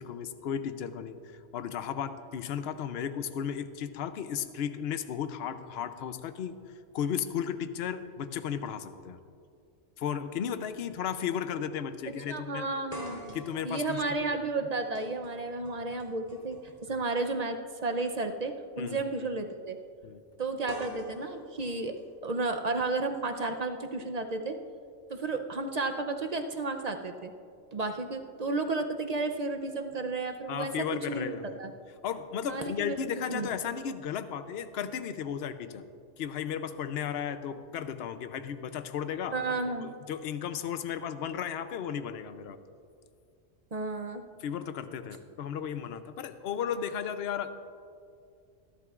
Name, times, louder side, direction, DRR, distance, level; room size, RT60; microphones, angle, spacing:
voice 1, 0.0-6.6 6.9-9.2 10.0-12.7 13.3-14.2 18.8-19.0 20.0-20.2 30.5-31.6 32.0-35.8 36.2-39.4 39.8-42.6 44.4-47.7, left 8 dB, 60° left, 11 dB, 0.8 m, -34 dB
sound 1, 9.7-9.8 10.9-11.1 11.4-11.5 12.9-16.9 18.1-18.3 20.7-22.7, equal, 30° left, 3.5 m, -46 dB
voice 2, 12.3-13.2 13.6-19.8 20.4-24.6 25.1-27.3 27.7-31.7 32.5-33.0 33.3-33.5 39.3-39.9 43.7-44.2, right 3 dB, 45° right, 5 dB, 0.6 m, -32 dB
24.5 x 11.5 x 2.4 m, 2.3 s
omnidirectional pair, 1.3 m